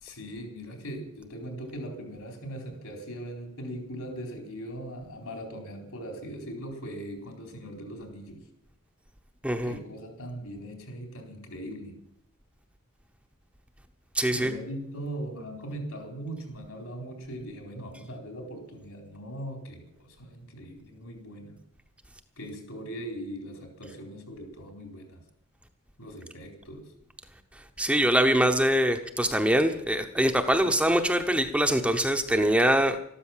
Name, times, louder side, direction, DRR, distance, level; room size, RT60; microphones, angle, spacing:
voice 1, 0.0-8.4 9.6-12.0 14.3-21.6 22.4-25.2 26.0-26.9 30.6-30.7, right 1 dB, 70° left, 3 dB, 4.2 m, -40 dB
voice 2, 9.4-9.7 14.1-14.5 27.8-33.0, right 1 dB, 5° right, 6 dB, 0.9 m, -23 dB
13.5 x 13.0 x 7.4 m, 0.73 s
head